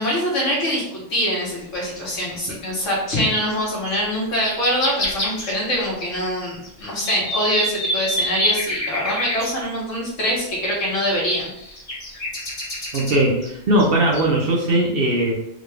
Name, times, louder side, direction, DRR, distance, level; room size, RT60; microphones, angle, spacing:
voice 1, 0.0-11.5, equal, 70° left, -4 dB, 1.4 m, -24 dB
sound 1, 3.4-3.5 3.9-6.0 6.3-6.4 6.6-9.5 10.8-13.5 13.8-13.9 14.1-14.3, left 1 dB, 30° left, 0.9 m, -27 dB
voice 2, 12.9-15.3, right 1 dB, 55° right, -2 dB, 0.7 m, -19 dB
3.7 x 2.3 x 3.3 m, 0.79 s
omnidirectional pair, 1.4 m